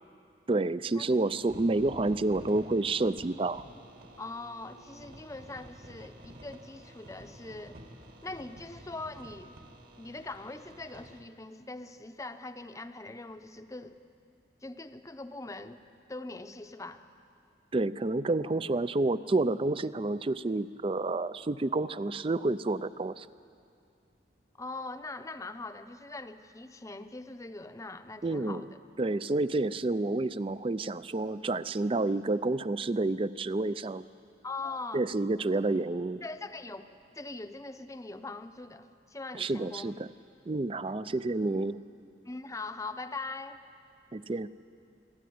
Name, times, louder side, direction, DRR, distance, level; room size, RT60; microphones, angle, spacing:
voice 1, 0.5-3.6 17.7-23.3 28.2-28.7 29.0-34.0 34.9-36.2 39.4-40.1 40.5-41.8 44.1-44.5, right 2 dB, 30° right, 16 dB, 0.4 m, -29 dB
sound 1, 1.1-11.2, right 1 dB, 55° right, 2.1 m, -51 dB
Bowed string instrument, 1.7-5.8, right 2 dB, 80° right, 2.6 m, -59 dB
voice 2, 4.2-7.8 8.2-9.6 10.0-14.0 14.6-15.8 16.1-17.0 24.6-28.8 34.4-35.1 36.2-36.9 37.1-40.0 42.3-43.6, left 3 dB, 20° left, 9 dB, 0.7 m, -42 dB
25.5 x 13.0 x 9.4 m, 2.4 s
head